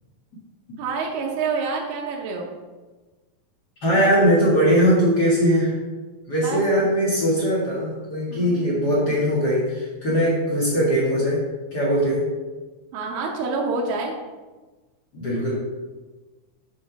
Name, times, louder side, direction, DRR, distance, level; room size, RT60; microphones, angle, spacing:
voice 1, 0.8-2.5 6.4-6.6 8.3-8.6 12.9-14.1, right 4 dB, 70° right, -1 dB, 2.3 m, -27 dB
voice 2, 3.8-5.7 6.3-11.4 11.7-12.3 15.1-15.5, equal, 45° left, -6 dB, 1.3 m, -20 dB
8.8 x 3.8 x 5.7 m, 1.3 s
omnidirectional pair, 4.6 m